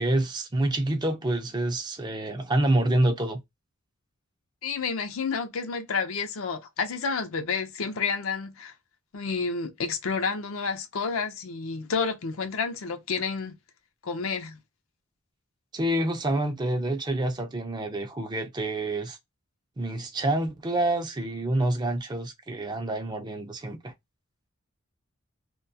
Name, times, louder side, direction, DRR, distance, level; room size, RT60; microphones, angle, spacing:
voice 1, 0.0-3.4 15.7-19.2 19.8-23.9, right 1 dB, 20° right, 0.4 m, -27 dB
voice 2, 4.6-8.7 9.1-13.6 14.0-14.6, left 5 dB, 80° left, 0.5 m, -30 dB
2.3 x 2.2 x 2.6 m
head